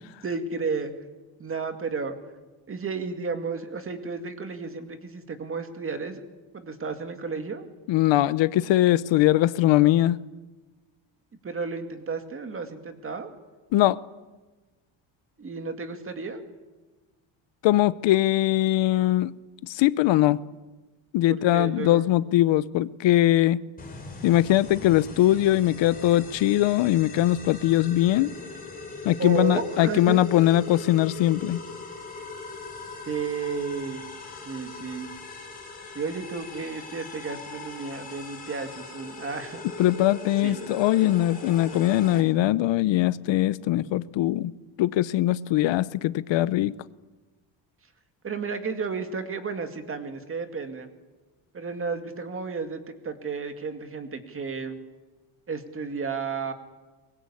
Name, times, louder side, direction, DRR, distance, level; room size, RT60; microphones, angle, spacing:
voice 1, 0.2-1.1 1.4-6.2 6.5-7.7 11.4-13.3 15.4-16.4 21.3-22.1 29.2-30.2 33.0-34.0 34.5-35.1 35.9-39.6 40.4-40.6 48.2-50.9 51.5-54.8 55.5-56.5, right 4 dB, 25° right, 2.2 m, -32 dB
voice 2, 7.9-10.2 13.7-14.0 17.6-19.3 19.6-20.4 21.1-23.6 24.2-28.3 29.0-31.6 39.8-44.5 44.8-46.7, left 14 dB, 65° left, 0.8 m, -21 dB
sound 1, 23.8-42.2, left 3 dB, 15° left, 4.6 m, -40 dB
23.5 x 21.5 x 8.5 m
cardioid pair, 160°, 48 cm